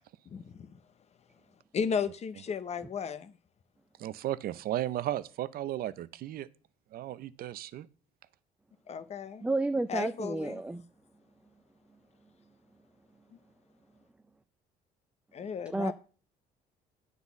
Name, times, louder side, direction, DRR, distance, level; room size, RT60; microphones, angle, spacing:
voice 1, 0.3-0.7 1.7-3.3 8.9-9.5 9.9-10.6 15.3-15.9, left 6 dB, 40° left, 0.7 m, -34 dB
voice 2, 4.0-6.5 6.9-7.9, right 13 dB, 60° right, 0.5 m, -35 dB
voice 3, 9.4-10.8 15.7-15.9, right 2 dB, 5° right, 0.4 m, -31 dB
9.5 x 4.1 x 7.0 m
cardioid pair, 110°, 17 cm